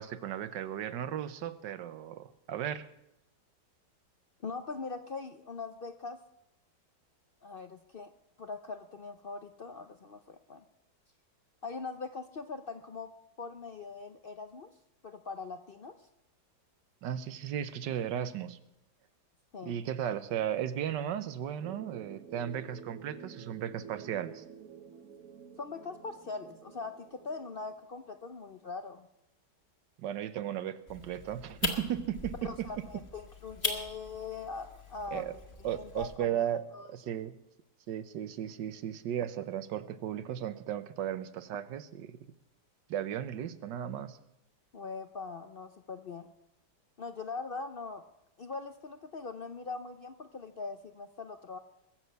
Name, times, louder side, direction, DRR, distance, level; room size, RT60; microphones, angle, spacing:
voice 1, 0.0-2.9 17.0-18.6 19.6-24.4 30.0-32.9 35.1-35.3 35.6-37.3 37.9-42.2 42.9-44.2, right 10 dB, 80° right, 13 dB, 1.5 m, -35 dB
voice 2, 4.4-6.2 7.4-8.1 8.4-10.6 11.6-14.7 15.0-16.1 19.5-19.8 25.6-29.1 32.4-36.4 36.7-36.9 44.7-46.3 47.0-48.0 48.4-51.6, left 4 dB, 65° left, 8 dB, 0.5 m, -41 dB
sound 1, 21.6-27.8, right 7 dB, 55° right, 1.2 m, -50 dB
sound 2, 30.9-36.2, left 3 dB, 30° left, 2.2 m, -40 dB
21.5 x 7.4 x 8.0 m, 0.86 s
omnidirectional pair, 1.9 m